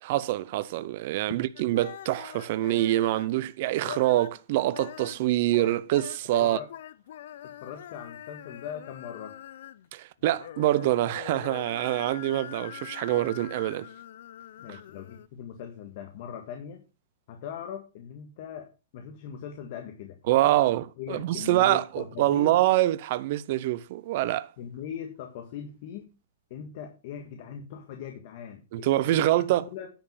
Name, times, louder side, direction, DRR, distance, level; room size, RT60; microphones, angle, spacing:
voice 1, 0.0-6.6 9.9-13.9 14.7-14.8 20.3-24.5 28.7-29.6, right 15 dB, 40° right, 0.5 m, -25 dB
sound 1, 1.6-3.4 3.8-4.4 4.7-9.9 10.2-15.3, left 11 dB, 55° left, 0.6 m, -43 dB
voice 2, 7.4-9.3 14.6-16.8 17.3-20.6 21.0-22.6 24.6-26.1 26.5-29.9, left 8 dB, 40° left, 1.7 m, -40 dB
10.5 x 5.5 x 7.0 m
hypercardioid pair, 170°, 0 cm